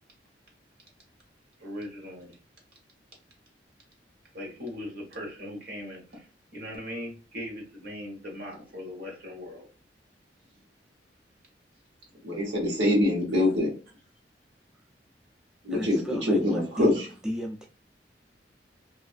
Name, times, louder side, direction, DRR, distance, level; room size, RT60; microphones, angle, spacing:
voice 1, 1.6-2.4 4.3-9.7, left 1 dB, 60° right, 0 dB, 1.1 m, -39 dB
voice 2, 12.2-13.7 15.6-17.0, left 1 dB, 85° right, -2 dB, 1.1 m, -24 dB
voice 3, 15.7-17.7, equal, 5° right, -1 dB, 0.4 m, -34 dB
2.6 x 2.5 x 2.4 m, 0.34 s
head